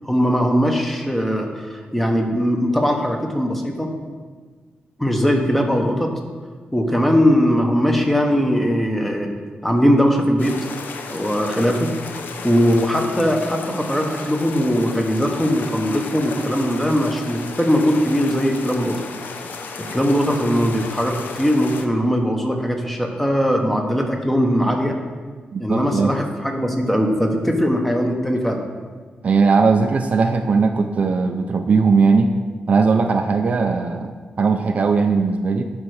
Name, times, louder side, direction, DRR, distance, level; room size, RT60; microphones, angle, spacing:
voice 1, 0.0-3.9 5.0-6.1 6.7-9.3 9.6-10.6 11.1-11.9 12.4-19.0 19.9-25.0 25.6-28.6, equal, 5° left, 3 dB, 0.9 m, -20 dB
sound 1, 10.4-21.9, left 4 dB, 70° left, 0.7 m, -34 dB
voice 2, 25.5-26.1 29.2-32.3 32.7-35.6, right 4 dB, 45° right, 5 dB, 0.5 m, -18 dB
9.6 x 4.4 x 6.4 m, 1.5 s
wide cardioid pair, 165°, 3 cm